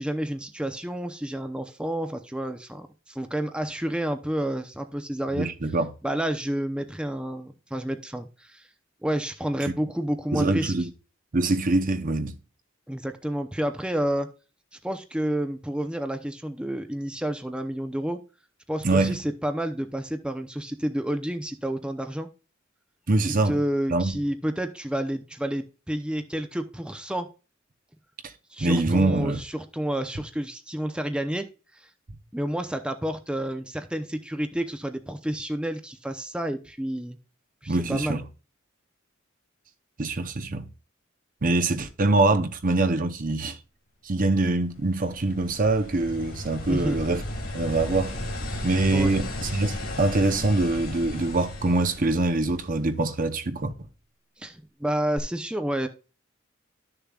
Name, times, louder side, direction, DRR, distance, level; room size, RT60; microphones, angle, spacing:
voice 1, 0.0-5.5 6.0-8.7 9.0-10.7 12.9-14.3 14.8-18.2 18.7-22.3 23.2-27.3 28.5-31.5 31.7-31.9 32.3-37.2 37.6-38.2 46.7-47.0 48.5-49.1 54.4-55.9, right 1 dB, 5° right, 0.6 m, -30 dB
voice 2, 5.3-5.9 10.3-10.9 11.3-12.4 18.8-19.2 23.1-23.6 23.9-24.1 28.6-29.4 37.7-38.2 40.0-40.6 41.4-43.6 44.0-47.2 47.5-48.2 48.6-53.7, right 2 dB, 40° right, 0.8 m, -24 dB
sound 1, 44.5-53.0 55.2-55.3, left 1 dB, 50° left, 2.1 m, -35 dB
12.5 x 6.8 x 2.4 m
head